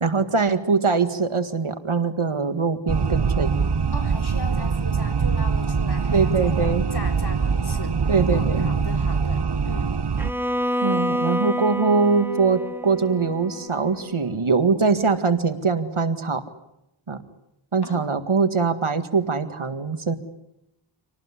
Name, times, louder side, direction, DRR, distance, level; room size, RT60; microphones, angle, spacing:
voice 1, 0.0-3.5 6.1-6.9 8.1-8.7 10.8-16.4 17.1-17.2 17.7-20.1, right 4 dB, 80° right, 9 dB, 2.0 m, -22 dB
sound 1, 2.9-10.3, right 5 dB, 55° right, 1.0 m, -23 dB
voice 2, 3.9-7.9 8.3-10.0 17.8-18.1, left 2 dB, 50° left, 5 dB, 4.0 m, -37 dB
Bowed string instrument, 10.2-14.2, equal, 5° right, 1.0 m, -28 dB
27.0 x 18.5 x 9.8 m, 0.86 s
wide cardioid pair, 45°, 48 cm